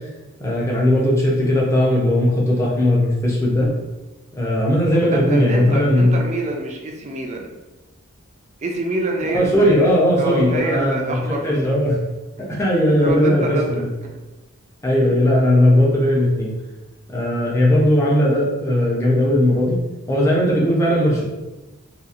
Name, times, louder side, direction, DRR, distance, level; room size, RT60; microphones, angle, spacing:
voice 1, 0.4-3.7 4.3-6.1 9.3-12.0 12.4-13.9 14.8-16.6 17.1-19.8 20.1-21.2, left 1 dB, 15° left, -4 dB, 0.6 m, -18 dB
voice 2, 5.1-7.5 8.6-11.8 12.4-12.5 12.9-14.2, right 2 dB, 35° right, 1 dB, 0.4 m, -27 dB
2.8 x 2.4 x 2.4 m, 1.1 s
head